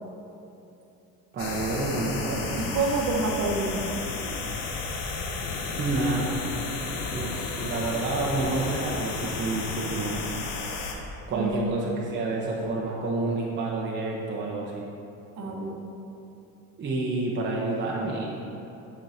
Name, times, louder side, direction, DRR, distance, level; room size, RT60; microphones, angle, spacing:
voice 1, 1.3-2.7 5.8-6.3 7.1-10.2 11.3-14.8 16.8-18.3, right 2 dB, 35° right, -4 dB, 0.9 m, -29 dB
sound 1, 1.4-11.0, left 4 dB, 85° left, 0.8 m, -32 dB
voice 2, 2.6-3.8 11.3-11.7 15.4-15.8, right 3 dB, 55° right, -1 dB, 1.2 m, -28 dB
7.3 x 6.3 x 2.8 m, 2.9 s
cardioid pair, 105°, 32 cm